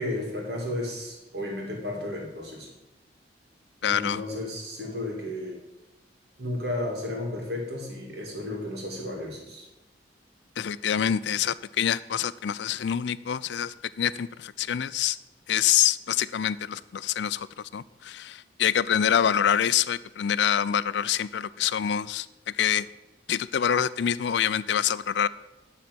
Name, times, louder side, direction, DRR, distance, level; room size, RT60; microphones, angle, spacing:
voice 1, 0.0-2.7 3.8-5.6 6.4-9.7, left 1 dB, 60° right, -1 dB, 2.7 m, -33 dB
voice 2, 3.8-4.2 10.6-15.2 15.5-17.5 17.7-22.3 22.6-22.9 23.3-25.3, left 9 dB, 70° left, 17 dB, 0.4 m, -26 dB
11.5 x 4.1 x 7.8 m, 0.99 s
head